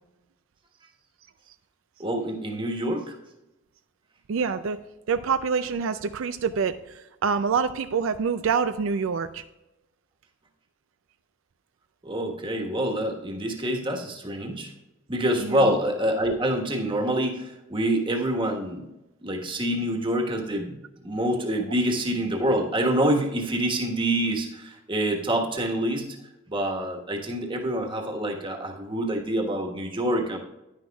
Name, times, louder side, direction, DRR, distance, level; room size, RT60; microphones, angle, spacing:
voice 1, 2.0-3.2 12.0-14.7 15.1-18.9 19.2-20.8 21.0-26.2 26.5-30.4, right 1 dB, 25° right, 2 dB, 1.3 m, -26 dB
voice 2, 4.3-4.8 5.1-9.4 15.4-15.7, right 6 dB, 75° right, 10 dB, 0.4 m, -26 dB
10.5 x 10.0 x 2.3 m, 0.97 s
head